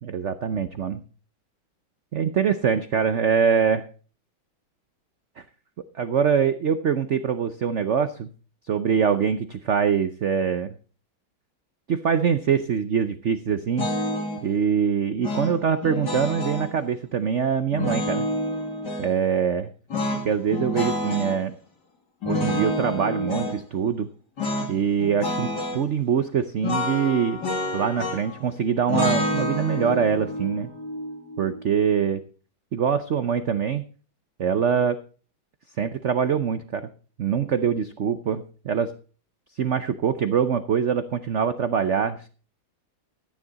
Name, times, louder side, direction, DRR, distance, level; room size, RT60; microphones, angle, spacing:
voice 1, 0.0-1.0 2.1-3.8 5.4-5.5 5.9-8.3 8.7-10.7 11.9-13.9 14.4-18.3 19.0-19.7 20.2-21.5 22.2-24.1 24.7-27.4 27.7-30.7 31.4-32.2 32.7-33.8 34.4-35.0 35.8-36.9 37.2-38.9 39.6-42.3, right 7 dB, 80° right, 11 dB, 0.6 m, -24 dB
sound 1, 13.8-14.4 15.2-16.7 17.7-19.1 19.9-21.4 22.2-23.6 24.4-24.7 25.0-25.8 26.6-28.4 28.9-32.0, left 1 dB, 55° left, 2.8 m, -28 dB
13.5 x 9.7 x 4.0 m, 0.38 s
omnidirectional pair, 2.2 m